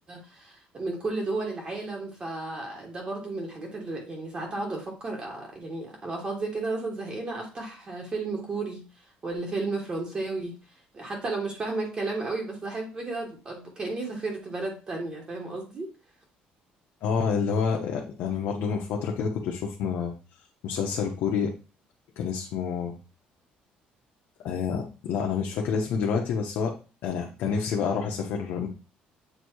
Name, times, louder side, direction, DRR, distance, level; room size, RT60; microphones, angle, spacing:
voice 1, 0.1-10.6 10.9-15.9, right 3 dB, 30° right, 0 dB, 1.4 m, -33 dB
voice 2, 17.0-20.1 20.6-21.5 22.2-22.9 24.4-26.8 27.0-28.7, left 6 dB, 75° left, 0 dB, 0.9 m, -28 dB
7.9 x 2.7 x 4.6 m, 0.34 s
cardioid pair, 130°, 3 cm